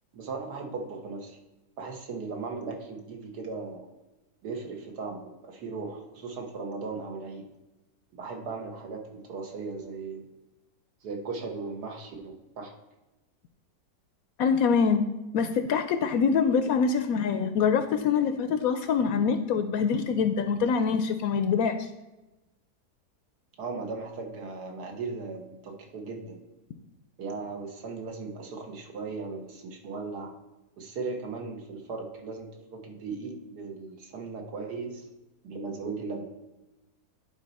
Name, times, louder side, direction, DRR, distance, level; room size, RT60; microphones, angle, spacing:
voice 1, 0.1-1.4 1.8-3.9 4.4-7.5 8.1-10.2 11.0-12.7 23.6-26.4 27.2-30.3 30.8-35.1 35.4-36.3, right 4 dB, 75° right, 3 dB, 1.8 m, -37 dB
voice 2, 14.4-15.1 15.3-21.9, left 6 dB, 70° left, 9 dB, 0.9 m, -25 dB
10.5 x 4.2 x 4.1 m, 1.0 s
omnidirectional pair, 1.8 m